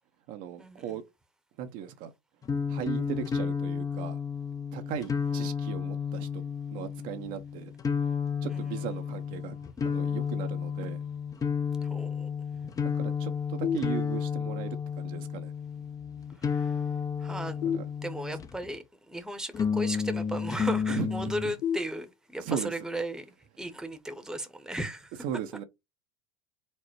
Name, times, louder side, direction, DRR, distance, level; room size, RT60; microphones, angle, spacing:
voice 1, 0.3-1.0 1.6-2.1 2.7-4.2 4.7-6.4 6.7-7.7 8.4-9.6 9.8-11.0 12.8-15.5 17.6-17.9 20.9-21.1 21.4-21.5 22.4-22.7 25.2-25.6, right 9 dB, 55° right, 0.7 m, -37 dB
sound 1, 2.4-18.7 19.5-21.5, left 6 dB, 20° left, 0.5 m, -32 dB
voice 2, 11.8-12.3 12.6-12.7 16.4-16.7 17.2-17.6 18.0-23.2 23.6-25.1, right 1 dB, 5° right, 0.9 m, -36 dB
sound 2, 13.6-14.6 17.6-18.6 21.6-22.6, left 8 dB, 50° left, 1.8 m, -34 dB
4.3 x 2.0 x 4.5 m
hypercardioid pair, 95°, 17 cm